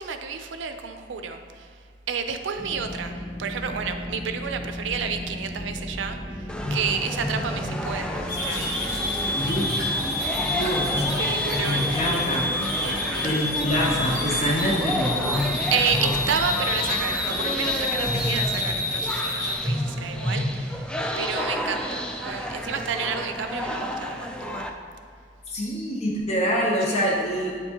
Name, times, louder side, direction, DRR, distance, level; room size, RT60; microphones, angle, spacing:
voice 1, 0.0-1.7 2.1-9.0 11.2-12.0 12.8-13.3 15.3-24.7 26.9-27.0, right 6 dB, 90° right, 6 dB, 0.4 m, -31 dB
sound 1, 2.5-18.7, equal, 20° right, 1.3 m, -37 dB
sound 2, 6.5-24.7, left 1 dB, 5° left, 0.3 m, -30 dB
sound 3, 8.3-19.6, left 2 dB, 55° left, 1.2 m, -28 dB
voice 2, 9.4-9.8 10.4-11.0 11.6-12.5 13.2-15.2 25.5-27.6, equal, 35° left, -3 dB, 0.8 m, -26 dB
8.4 x 4.4 x 2.8 m, 2.2 s
head